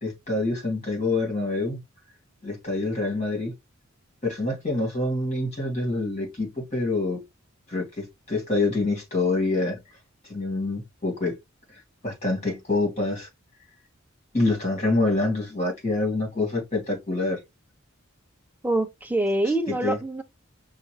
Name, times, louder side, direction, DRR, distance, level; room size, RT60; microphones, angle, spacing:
voice 1, 0.0-1.8 2.4-3.5 4.2-7.2 7.7-9.8 10.3-11.4 12.0-13.3 14.3-17.4 19.8-20.0, left 2 dB, 35° left, 2.4 m, -26 dB
voice 2, 18.6-20.2, right 2 dB, 10° right, 0.6 m, -25 dB
5.7 x 2.4 x 3.1 m
head